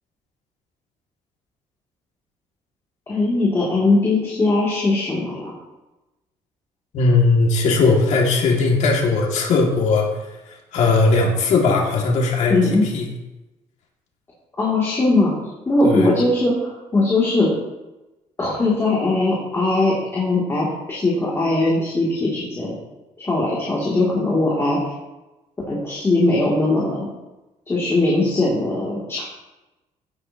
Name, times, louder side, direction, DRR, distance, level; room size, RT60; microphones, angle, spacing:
voice 1, 3.1-5.5 12.5-12.8 14.6-15.3 15.7-17.5 18.4-22.7 23.2-24.8 25.7-27.1 27.7-29.2, left 2 dB, 20° left, -6 dB, 2.9 m, -20 dB
voice 2, 6.9-13.1 15.8-16.1, left 3 dB, 65° left, -1 dB, 2.4 m, -19 dB
16.5 x 8.3 x 3.0 m, 1.0 s
cardioid pair, 135°, 13 cm